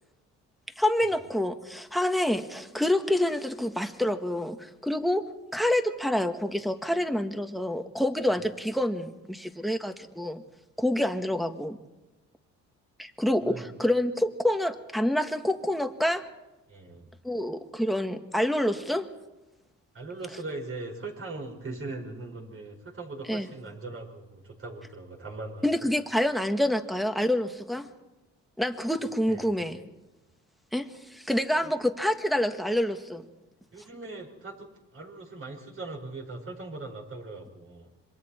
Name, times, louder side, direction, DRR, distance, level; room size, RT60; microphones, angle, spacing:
voice 1, 0.8-5.3 5.5-10.4 10.8-11.8 13.0-16.2 17.2-19.1 23.3-23.5 25.6-27.9 28.6-29.8 30.7-33.2, left 1 dB, ahead, 6 dB, 1.5 m, -27 dB
voice 2, 16.7-17.1 19.9-25.9 29.3-29.5 31.6-31.7 33.7-37.9, right 3 dB, 45° right, 0 dB, 5.5 m, -40 dB
26.5 x 23.0 x 4.4 m, 1.0 s
cardioid pair, 90°, 30 cm